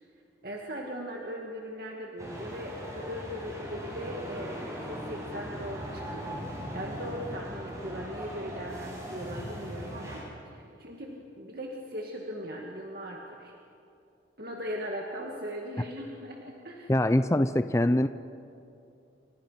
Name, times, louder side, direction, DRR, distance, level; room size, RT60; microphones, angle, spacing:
voice 1, 0.4-6.4 6.7-13.5 14.4-16.9, equal, 55° right, -1 dB, 2.2 m, -39 dB
sound 1, 2.2-10.2, equal, 15° right, 5.9 m, -39 dB
voice 2, 16.9-18.1, left 1 dB, 15° left, 10 dB, 0.5 m, -23 dB
30.0 x 26.5 x 5.8 m, 2.6 s
head